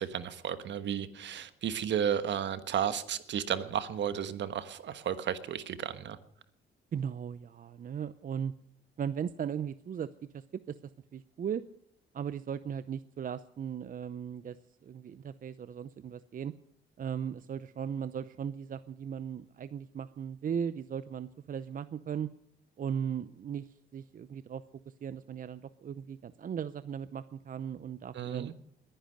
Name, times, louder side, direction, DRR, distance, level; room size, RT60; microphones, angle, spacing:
voice 1, 0.0-6.2 28.1-28.5, right 9 dB, 65° right, 11 dB, 1.4 m, -33 dB
voice 2, 6.9-8.5 9.0-10.1 10.3-10.8 11.1-11.6 12.1-14.6 14.8-16.5 17.0-22.3 22.8-24.6 25.0-28.5, right 8 dB, 45° right, 14 dB, 0.6 m, -37 dB
21.0 x 10.5 x 6.6 m, 0.69 s
cardioid pair, 90°, 20 cm